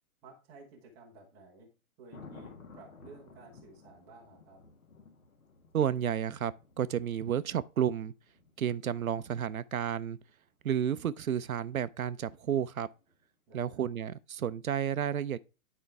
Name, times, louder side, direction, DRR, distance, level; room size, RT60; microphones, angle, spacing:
voice 1, 0.2-1.7 2.0-4.6 13.5-13.8, right 3 dB, 5° right, 0.5 m, -54 dB
Thunder, 2.1-10.2 12.9-13.2, left 4 dB, 70° left, 1.5 m, -55 dB
voice 2, 5.7-8.1 8.6-10.2 10.6-12.9 13.5-15.4, right 9 dB, 70° right, 0.5 m, -31 dB
9.7 x 4.5 x 3.3 m
figure-of-eight pair, 125°, 43 cm